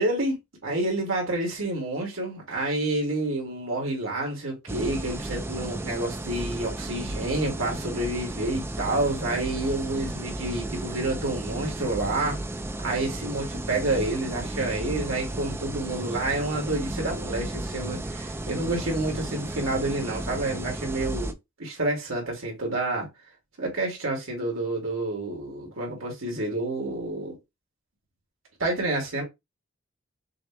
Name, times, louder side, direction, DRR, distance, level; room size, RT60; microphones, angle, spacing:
voice 1, 0.0-12.4 12.8-21.3 21.6-23.1 23.6-27.4 28.6-29.2, right 2 dB, 80° right, 2.1 m, -29 dB
sound 1, 4.7-21.3, right 1 dB, 10° right, 0.4 m, -34 dB
6.2 x 2.2 x 3.0 m
head